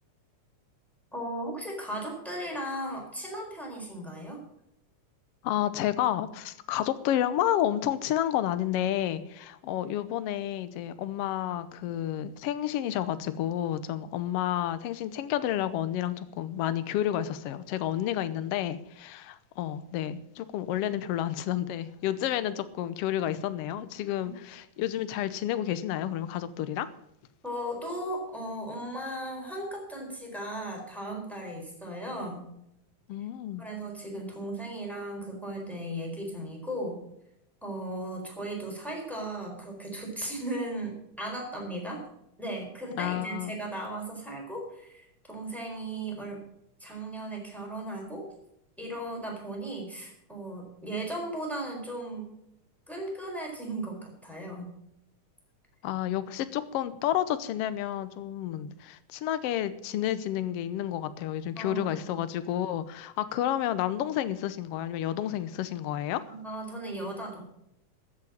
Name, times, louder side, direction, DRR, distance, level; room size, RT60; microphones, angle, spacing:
voice 1, 1.1-4.4 27.4-32.5 33.6-37.0 37.6-42.0 42.4-46.4 46.8-48.3 48.8-52.3 52.9-54.7 61.6-61.8 62.1-62.2 66.3-67.4, right 1 dB, ahead, -1 dB, 4.1 m, -36 dB
voice 2, 5.4-26.9 33.1-33.6 42.9-43.6 55.8-66.2, left 12 dB, 70° left, 13 dB, 1.5 m, -30 dB
14.0 x 7.4 x 7.3 m, 0.78 s
omnidirectional pair, 3.5 m